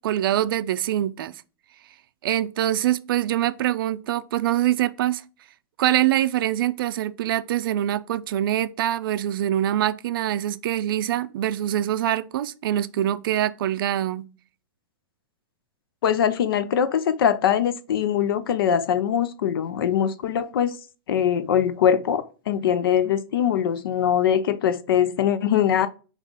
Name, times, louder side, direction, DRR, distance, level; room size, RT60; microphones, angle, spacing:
voice 1, 0.0-1.4 2.2-5.2 5.8-14.3, right 12 dB, 70° right, 0.4 m, -24 dB
voice 2, 16.0-20.8 21.1-25.9, left 9 dB, 80° left, 0.5 m, -22 dB
5.3 x 2.4 x 3.6 m
hypercardioid pair, 135°, 12 cm